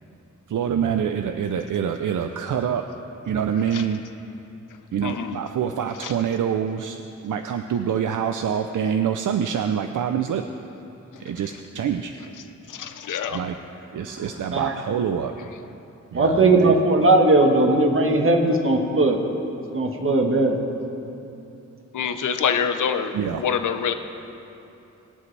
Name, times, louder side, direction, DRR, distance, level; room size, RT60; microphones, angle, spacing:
voice 1, 0.5-2.8 3.3-4.0 4.9-7.0 7.2-10.4 11.2-12.1 13.3-13.6 13.9-15.5 16.1-16.8 23.1-23.4, right 8 dB, 85° right, 6 dB, 0.5 m, -26 dB
voice 2, 5.0-5.4 6.0-6.1 12.7-13.4 21.9-23.9, left 7 dB, 85° left, 8 dB, 0.7 m, -25 dB
voice 3, 16.1-19.2 19.7-20.6, right 2 dB, 45° right, 3 dB, 1.3 m, -18 dB
22.0 x 8.6 x 3.3 m, 2.9 s
wide cardioid pair, 130°, 30 cm